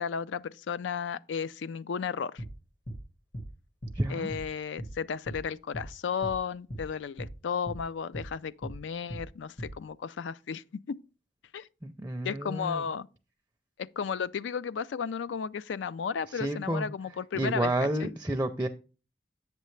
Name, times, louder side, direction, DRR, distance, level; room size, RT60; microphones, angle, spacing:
voice 1, 0.0-2.4 4.1-11.0 11.5-11.7 12.2-13.1 13.8-17.7 18.0-18.1, left 6 dB, 90° left, 0.4 m, -34 dB
sound 1, 2.4-2.5 2.9-3.0 3.3-3.5 3.8-4.0 4.3-4.5 4.8-4.9 5.3-5.4 5.7-5.9 6.2-6.4 6.7-6.9 7.2-7.3 7.7-7.8 8.1-8.3 8.6-8.8 9.1-9.3 9.6-9.7, right 1 dB, 50° left, 1.7 m, -39 dB
voice 2, 3.9-4.3 11.8-12.9 16.3-16.9 17.3-18.7, right 1 dB, 10° right, 0.4 m, -30 dB
8.2 x 6.8 x 3.2 m
head